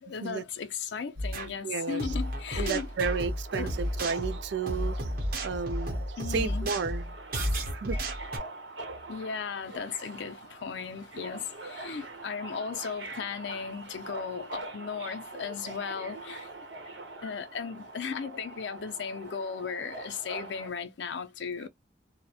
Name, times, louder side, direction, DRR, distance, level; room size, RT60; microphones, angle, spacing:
voice 1, 0.0-2.9 3.5-3.7 6.2-6.7 9.1-16.5 16.8-21.7, left 6 dB, 70° left, 0.5 m, -36 dB
sound 1, 1.2-1.5 2.0-8.4, equal, 50° right, 0.7 m, -32 dB
voice 2, 1.6-2.1 2.6-5.0 5.4-6.0 6.3-7.1 7.7-8.0, right 5 dB, 65° right, 0.3 m, -32 dB
Subway metro underground, 1.7-20.7, right 2 dB, 80° right, 0.8 m, -44 dB
2.8 x 2.1 x 2.2 m
head